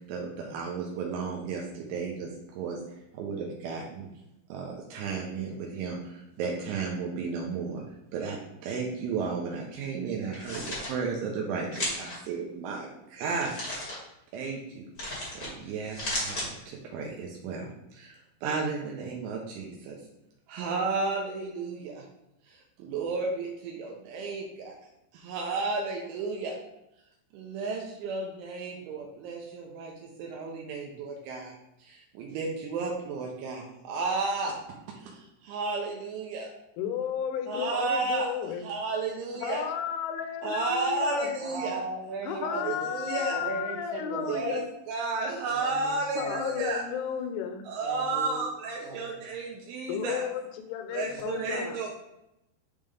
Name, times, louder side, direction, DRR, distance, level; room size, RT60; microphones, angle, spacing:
voice 1, 0.1-2.3 2.6-2.8 3.2-4.1 4.5-6.0 6.4-7.8 8.1-8.4 8.6-10.6 10.9-13.6 14.3-14.8 15.3-17.6 18.0-18.1 18.4-20.0 20.5-22.0 22.8-24.7 25.2-26.5 27.3-29.9 30.2-31.5 32.2-34.5 35.5-36.5 37.5-39.7 40.4-41.8 42.4-43.4 44.3-46.8 47.7-50.3 50.9-51.9, right 4 dB, 80° right, -1 dB, 3.2 m, -33 dB
sound 1, 10.2-10.9 11.7-12.2 13.3-14.0 15.0-15.5 15.8-16.5, left 1 dB, 55° left, 0.9 m, -34 dB
voice 2, 36.8-38.6 39.4-41.3 42.2-44.7 46.2-47.7 49.9-51.8, left 9 dB, 80° left, 6 dB, 3.0 m, -33 dB
voice 3, 41.4-42.8 43.3-44.4 45.5-46.7 47.8-48.5 48.8-49.0 51.1-51.3, right 2 dB, 60° right, -5 dB, 3.4 m, -38 dB
10.5 x 3.6 x 3.5 m, 0.86 s
omnidirectional pair, 5.7 m